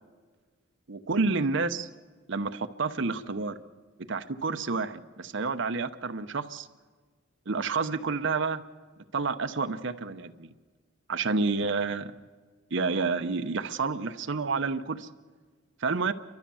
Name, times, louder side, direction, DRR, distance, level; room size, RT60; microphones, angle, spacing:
voice 1, 0.9-1.9 2.3-3.6 4.1-6.7 7.5-8.6 9.1-10.3 11.1-12.1 12.7-15.1 15.8-16.1, right 4 dB, 65° right, 9 dB, 0.8 m, -29 dB
29.5 x 13.0 x 7.1 m, 1.5 s
head